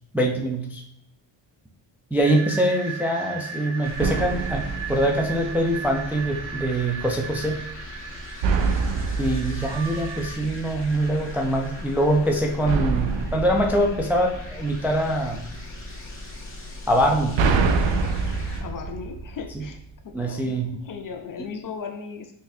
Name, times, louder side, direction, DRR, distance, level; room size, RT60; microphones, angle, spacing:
voice 1, 0.1-0.8 2.1-7.6 9.2-15.4 16.9-17.4 20.1-20.7, right 1 dB, 5° right, 0 dB, 0.4 m, -23 dB
sound 1, 2.2-10.4, right 5 dB, 35° right, 1.0 m, -37 dB
sound 2, 3.8-18.6, left 1 dB, 25° left, 1.2 m, -39 dB
sound 3, 4.0-5.9 8.4-10.8 12.7-14.9 16.9-19.9, right 4 dB, 70° right, 0.5 m, -26 dB
voice 2, 18.6-19.8 20.0-22.3, left 6 dB, 45° left, 5 dB, 0.5 m, -37 dB
3.8 x 2.5 x 2.7 m, 0.72 s
cardioid pair, 80°, 48 cm